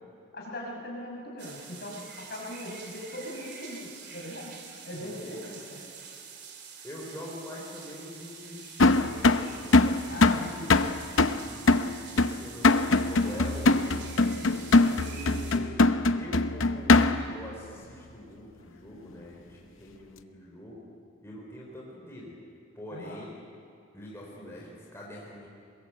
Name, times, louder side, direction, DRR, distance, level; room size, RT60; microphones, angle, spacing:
voice 1, 0.3-4.5 4.8-5.8 10.1-10.7 22.9-23.2, left 1 dB, 50° left, -1 dB, 5.8 m, -40 dB
sound 1, 1.4-15.6, right 6 dB, 50° right, 2.9 m, -46 dB
voice 2, 4.9-5.2 6.8-15.7 16.1-20.9 21.2-22.3 22.7-23.3 23.9-25.5, left 1 dB, 10° left, -4 dB, 4.4 m, -44 dB
sound 2, 8.8-17.4, left 3 dB, 65° left, 0.8 m, -22 dB
22.0 x 22.0 x 8.3 m, 2.4 s
head